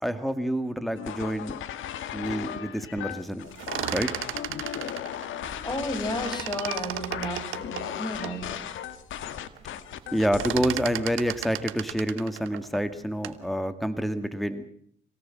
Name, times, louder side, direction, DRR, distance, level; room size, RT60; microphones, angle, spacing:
voice 1, 0.0-1.6 2.1-3.5 3.9-4.1 10.1-14.6, equal, ahead, 9 dB, 2.1 m, -28 dB
sound 1, 0.9-10.6, left 10 dB, 80° left, 1.7 m, -37 dB
sound 2, 3.4-6.0 6.3-8.4 8.9-9.0 9.3-9.7 9.9-13.5, right 13 dB, 85° right, 1.3 m, -35 dB
voice 2, 5.6-8.7, left 1 dB, 20° left, 7 dB, 6.5 m, -33 dB
27.0 x 18.0 x 7.7 m, 0.65 s
cardioid pair, 90°, 20 cm